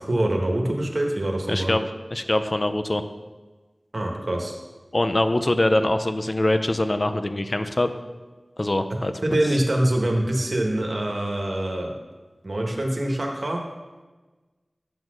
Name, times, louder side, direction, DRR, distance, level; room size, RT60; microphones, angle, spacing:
voice 1, 0.0-1.7 3.9-4.6 8.9-11.9 12.4-13.6, right 1 dB, 60° right, 1 dB, 1.4 m, -24 dB
voice 2, 1.5-1.8 2.1-3.0 4.9-7.9 8.6-9.1, left 1 dB, 45° left, 9 dB, 0.5 m, -23 dB
9.0 x 4.2 x 6.4 m, 1.3 s
wide cardioid pair, 50°, 0 cm